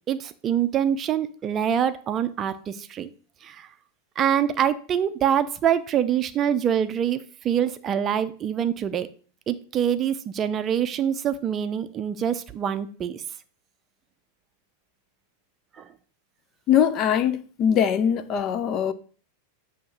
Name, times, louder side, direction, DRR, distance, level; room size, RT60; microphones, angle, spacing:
voice 1, 0.1-3.1 3.4-3.7 4.2-7.2 7.4-9.1 9.5-13.2 15.8-15.9, right 9 dB, 30° right, 0.5 m, -25 dB
voice 2, 16.7-18.9, left 8 dB, 35° left, 0.6 m, -22 dB
8.3 x 2.8 x 6.1 m
figure-of-eight pair, 90°, 0 cm